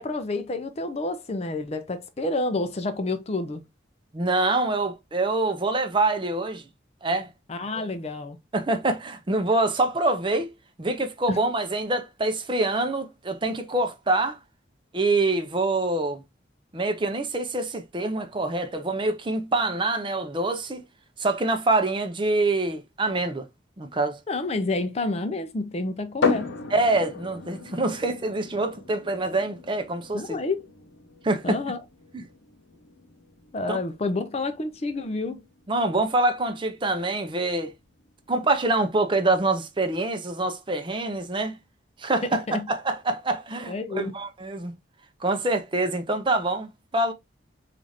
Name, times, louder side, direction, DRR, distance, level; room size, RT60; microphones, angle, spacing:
voice 1, 0.0-3.6 7.5-8.4 11.3-11.4 24.3-26.6 30.1-30.6 31.4-31.8 33.5-35.4 42.5-42.7 43.7-44.1, left 2 dB, 35° left, 0.4 m, -29 dB
voice 2, 4.1-6.6 7.0-7.3 7.7-7.8 8.5-10.5 10.8-14.4 14.9-16.2 16.7-20.8 21.2-23.5 23.8-24.2 26.7-30.4 31.2-31.6 32.1-32.2 33.7-33.8 35.7-37.7 38.3-41.6 42.0-44.7 45.2-47.1, right 2 dB, 25° right, 0.5 m, -25 dB
sound 1, 26.2-39.7, left 4 dB, 85° left, 0.8 m, -35 dB
4.8 x 2.5 x 2.6 m
head